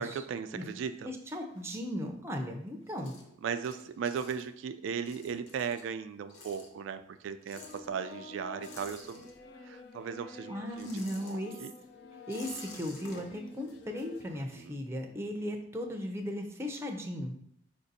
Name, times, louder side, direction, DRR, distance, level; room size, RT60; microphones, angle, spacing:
voice 1, 0.0-1.1 3.4-9.3 9.6-10.9 11.2-11.7 14.3-14.8, right 6 dB, 85° right, 10 dB, 0.3 m, -37 dB
sound 1, 0.7-2.2 2.6-9.8 10.0-14.7, left 2 dB, 80° left, 0.9 m, -53 dB
voice 2, 1.0-3.1 10.5-11.5 12.3-17.4, equal, 15° right, 3 dB, 0.5 m, -37 dB
What hell sounds like, 7.5-14.4, left 4 dB, 60° left, 0.5 m, -49 dB
5.0 x 2.6 x 4.0 m, 0.73 s
head